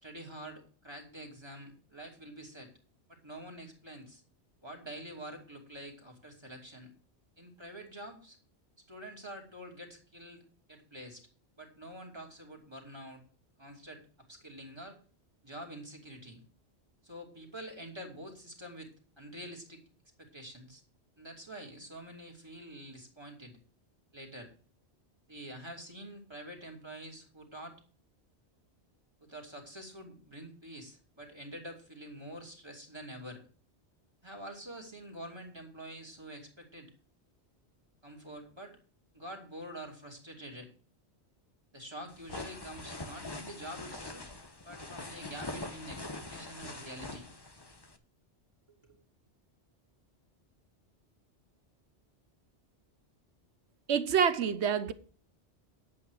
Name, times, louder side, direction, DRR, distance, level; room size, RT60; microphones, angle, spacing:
voice 1, 0.0-2.7 3.1-4.2 4.6-6.9 7.4-8.4 8.8-10.4 10.7-11.3 11.6-13.2 13.6-15.0 15.4-16.4 17.0-18.9 19.2-19.8 20.2-20.8 21.2-23.6 24.1-24.5 25.3-27.8 29.2-33.4 34.2-36.9 38.0-38.8 39.1-40.7 41.7-44.3 44.6-47.3 48.7-49.0, right 1 dB, 25° right, 2.9 m, -47 dB
sound 1, 42.1-48.0, left 2 dB, 20° left, 1.1 m, -43 dB
voice 2, 53.9-54.9, right 7 dB, 75° right, 1.1 m, -27 dB
11.0 x 8.8 x 4.8 m
omnidirectional pair, 1.2 m